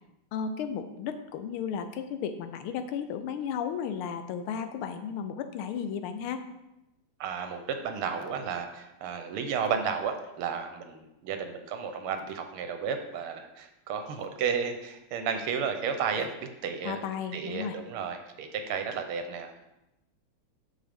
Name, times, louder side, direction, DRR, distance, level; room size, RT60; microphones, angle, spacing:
voice 1, 0.3-6.4 16.8-17.8, left 7 dB, 80° left, 9 dB, 1.5 m, -34 dB
voice 2, 7.2-17.0 17.3-19.6, right 6 dB, 80° right, 6 dB, 1.7 m, -33 dB
7.7 x 6.4 x 3.5 m, 0.92 s
omnidirectional pair, 2.4 m